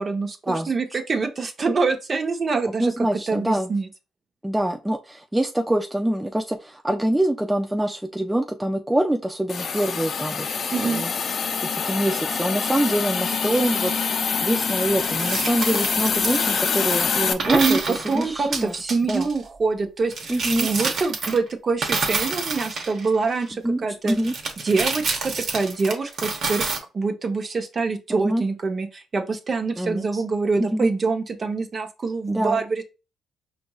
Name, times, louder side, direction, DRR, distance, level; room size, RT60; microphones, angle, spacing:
voice 1, 0.0-3.9 10.7-11.0 17.5-20.3 20.6-24.2 24.6-26.6 26.9-32.8, right 4 dB, 40° right, 6 dB, 0.8 m, -25 dB
voice 2, 2.8-3.7 4.4-11.1 11.6-13.9 14.4-18.7 19.1-19.3 20.3-20.7 23.6-24.3 28.1-28.4 29.8-30.2 30.7-30.9 32.3-32.6, right 1 dB, 5° right, 4 dB, 0.4 m, -25 dB
Hiss, 9.5-17.3, left 6 dB, 55° left, 0.5 m, -25 dB
sound 1, 15.0-17.0 17.4-19.4 20.1-21.5 21.8-23.4 24.1-26.8, right 4 dB, 60° right, 1.0 m, -28 dB
5.0 x 3.0 x 2.3 m, 0.30 s
cardioid pair, 90°, 0 cm